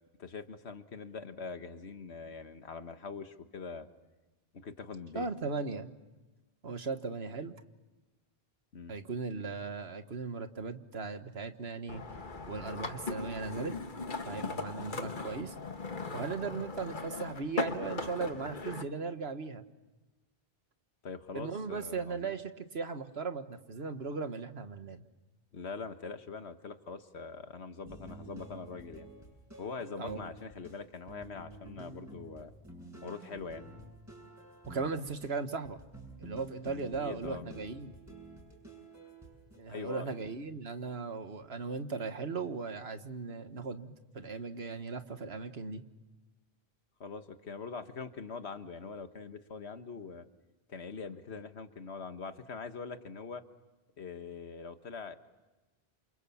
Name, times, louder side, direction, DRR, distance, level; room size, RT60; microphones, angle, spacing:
voice 1, 0.2-3.9 4.5-5.3 8.7-9.0 14.3-14.6 21.0-22.3 25.5-29.1 29.6-32.5 33.0-33.7 37.0-37.4 39.7-40.3 47.0-50.2 50.7-53.4 54.0-55.2, left 5 dB, 85° left, 9 dB, 1.7 m, -43 dB
voice 2, 5.1-5.9 6.6-7.5 8.9-12.0 12.5-13.7 14.2-15.5 16.1-19.6 21.3-25.0 30.0-30.2 34.6-35.8 36.2-37.9 39.6-45.8, right 4 dB, 75° right, 9 dB, 1.7 m, -37 dB
sound 1, 11.9-18.8, left 3 dB, 50° left, 1.5 m, -39 dB
sound 2, 27.9-39.6, right 2 dB, 15° right, 7.4 m, -50 dB
28.5 x 27.5 x 7.2 m, 1.1 s
omnidirectional pair, 1.1 m